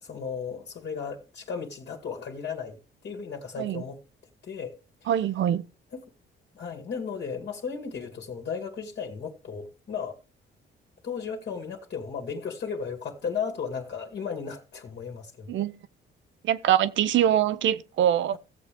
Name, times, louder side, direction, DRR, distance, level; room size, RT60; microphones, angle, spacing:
voice 1, 0.0-2.8 3.0-4.0 4.4-4.7 5.0-5.1 5.9-6.0 6.5-10.2 11.0-15.7, left 6 dB, 60° left, 2.1 m, -35 dB
voice 2, 5.1-5.6 15.5-15.7 16.4-18.4, right 10 dB, 70° right, 0.9 m, -23 dB
16.0 x 7.4 x 3.5 m
cardioid pair, 90°, 20 cm